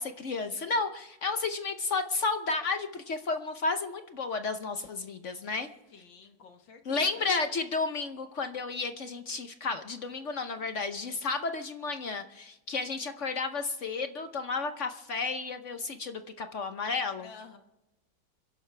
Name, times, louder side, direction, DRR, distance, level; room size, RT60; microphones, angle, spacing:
voice 1, 0.0-5.7 6.9-17.3, left 4 dB, 55° left, 8 dB, 0.9 m, -32 dB
voice 2, 5.9-7.3 17.2-17.6, left 5 dB, 75° left, 5 dB, 2.1 m, -51 dB
29.0 x 11.5 x 3.3 m, 0.97 s
omnidirectional pair, 2.1 m